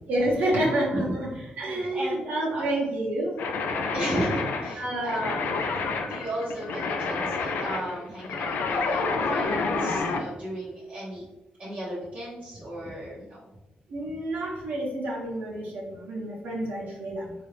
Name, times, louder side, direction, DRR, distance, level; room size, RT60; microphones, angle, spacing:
voice 1, 0.1-1.3 1.6-3.4 4.7-5.3 13.9-17.3, right 1 dB, 75° right, -4 dB, 0.9 m, -28 dB
voice 2, 1.3-2.6 3.9-5.5 6.0-11.3 11.6-13.4, right 1 dB, 40° right, -8 dB, 0.9 m, -35 dB
sound 1, 3.4-10.3, left 4 dB, 80° left, 0.4 m, -29 dB
3.9 x 2.4 x 3.3 m, 1.0 s
cardioid pair, 105°, 3 cm